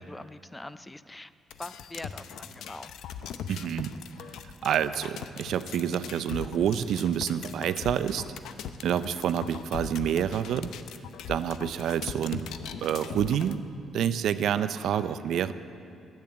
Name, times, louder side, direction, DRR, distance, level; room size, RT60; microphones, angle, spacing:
voice 1, 0.1-1.3 1.6-2.9, left 1 dB, 15° left, 14 dB, 0.4 m, -43 dB
sound 1, 1.5-13.6, left 8 dB, 80° left, 0.5 m, -40 dB
voice 2, 3.5-3.9 4.6-8.2 8.8-10.7 11.3-12.5 12.8-13.6 13.9-15.5, right 9 dB, 75° right, 13 dB, 0.5 m, -28 dB
10.5 x 8.8 x 8.2 m, 2.5 s
cardioid pair, 90°, 0 cm